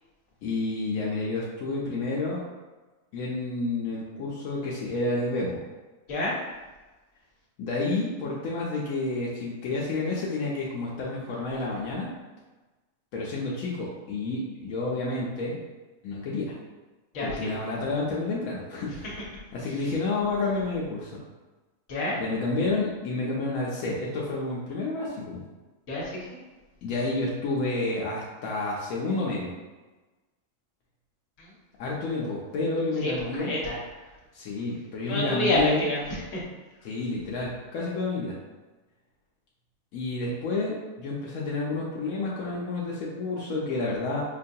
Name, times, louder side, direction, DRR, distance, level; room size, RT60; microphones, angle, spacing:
voice 1, 0.4-2.4 3.1-5.6 7.6-12.1 13.1-15.6 16.0-16.5 17.2-19.1 19.5-21.1 22.2-25.4 26.8-29.5 31.8-33.5 34.3-35.8 36.8-38.4 39.9-44.2, left 2 dB, 85° left, -4 dB, 1.1 m, -30 dB
voice 2, 17.1-17.5 18.9-19.1 19.6-19.8 21.9-22.2 25.9-26.4 31.4-31.5 33.0-33.9 35.1-36.4, left 1 dB, 65° left, -5 dB, 1.3 m, -29 dB
5.2 x 2.3 x 2.7 m, 1.2 s
omnidirectional pair, 1.4 m